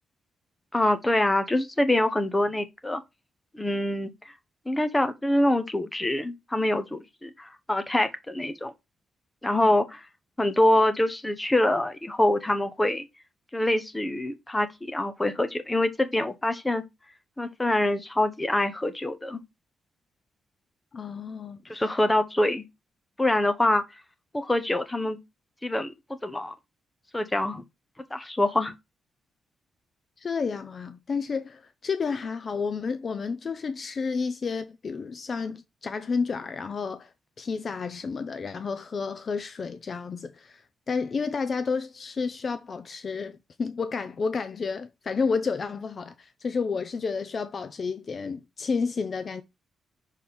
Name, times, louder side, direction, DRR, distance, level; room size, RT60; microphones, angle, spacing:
voice 1, 0.7-3.0 3.5-4.3 4.7-8.7 9.4-10.1 10.4-13.1 13.5-16.8 17.4-19.4 21.7-22.6 23.2-23.8 24.3-25.2 25.6-25.9 26.2-26.5 27.1-27.6 28.1-28.7, left 1 dB, 10° left, 0.9 m, -25 dB
voice 2, 20.9-21.8 30.2-37.1 37.4-40.6 40.9-49.4, left 5 dB, 40° left, 0.6 m, -31 dB
6.3 x 4.2 x 3.6 m
cardioid pair, 145°, 0 cm